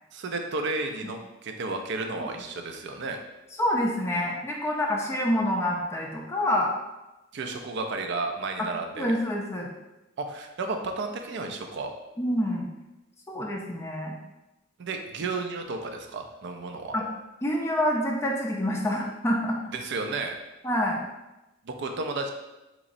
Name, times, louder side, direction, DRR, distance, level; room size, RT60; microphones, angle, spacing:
voice 1, 0.1-3.2 7.3-9.1 10.2-11.9 14.8-16.9 19.7-20.4 21.6-22.3, right 3 dB, 60° right, 4 dB, 0.4 m, -32 dB
voice 2, 3.6-6.7 8.6-8.7 9.0-9.7 12.2-12.7 13.3-14.2 16.9-17.1 17.4-19.6 20.6-21.0, left 1 dB, 15° left, -1 dB, 0.4 m, -27 dB
3.8 x 3.0 x 2.5 m, 0.99 s
head